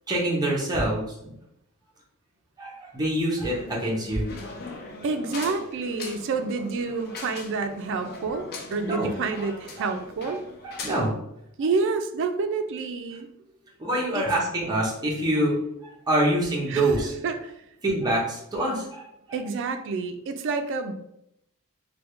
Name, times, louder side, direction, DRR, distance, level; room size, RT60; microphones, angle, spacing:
voice 1, 0.1-1.3 2.6-4.2 8.8-9.1 9.8-9.9 10.2-10.3 10.6-11.1 13.8-15.6 15.8-17.1 17.8-19.1, right 1 dB, 20° right, -4 dB, 0.7 m, -25 dB
sound 1, 3.5-11.1, left 3 dB, 45° left, 0.5 m, -40 dB
voice 2, 5.0-10.4 11.6-13.3 14.1-14.2 16.7-17.5 19.3-20.9, right 4 dB, 55° right, 8 dB, 0.3 m, -28 dB
3.4 x 2.2 x 3.1 m, 0.79 s
head